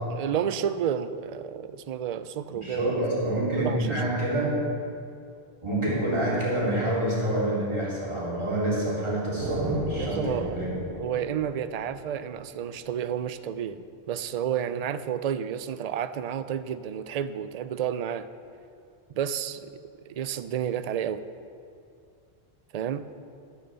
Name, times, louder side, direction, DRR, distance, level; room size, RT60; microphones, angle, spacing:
voice 1, 0.1-3.0 3.6-4.0 10.0-10.6 11.0-18.3 19.1-19.7 20.1-21.2 22.7-23.0, right 9 dB, 55° right, 12 dB, 0.4 m, -31 dB
voice 2, 2.5-4.5 5.6-10.7, right 1 dB, 25° right, -7 dB, 3.5 m, -27 dB
sound 1, 9.4-13.1, right 1 dB, 75° right, 1.6 m, -35 dB
12.5 x 6.8 x 6.8 m, 2.4 s
omnidirectional pair, 1.1 m